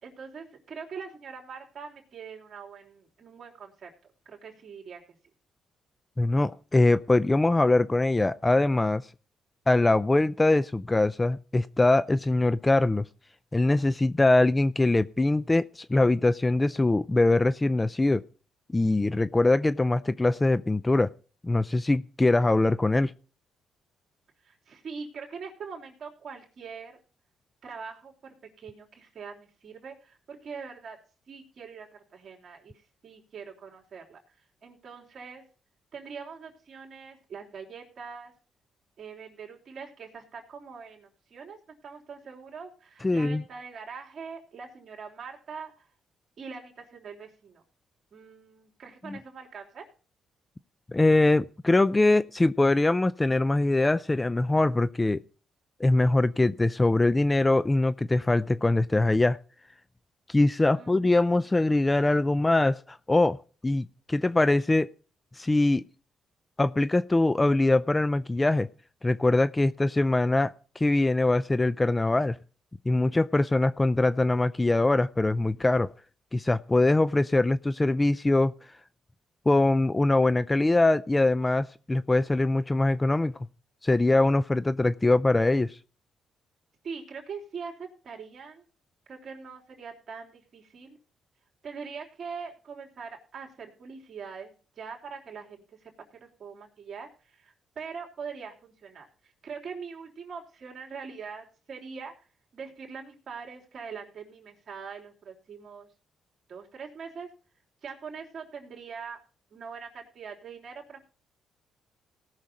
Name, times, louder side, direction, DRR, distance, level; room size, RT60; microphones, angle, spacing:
voice 1, 0.0-3.9 4.3-5.0 24.4-27.0 27.6-31.0 31.3-34.4 34.6-35.4 35.9-38.3 39.0-45.9 46.4-47.6 48.1-49.9 60.7-61.6 86.8-88.7 89.1-91.0 91.6-102.1 102.5-105.9 106.5-107.3 107.8-109.2 109.5-111.0, right 5 dB, 55° right, 0 dB, 3.4 m, -43 dB
voice 2, 6.2-9.0 9.7-13.1 13.5-18.2 18.7-21.1 21.4-23.1 43.0-43.4 49.1-49.2 50.9-55.2 55.8-59.4 60.3-63.4 63.6-64.9 65.4-65.8 66.6-68.7 69.0-72.4 72.9-75.9 76.3-78.5 79.5-83.3 83.8-85.8, left 2 dB, 15° left, 17 dB, 0.4 m, -23 dB
18.0 x 6.5 x 4.2 m, 0.38 s
cardioid pair, 90°, 0 cm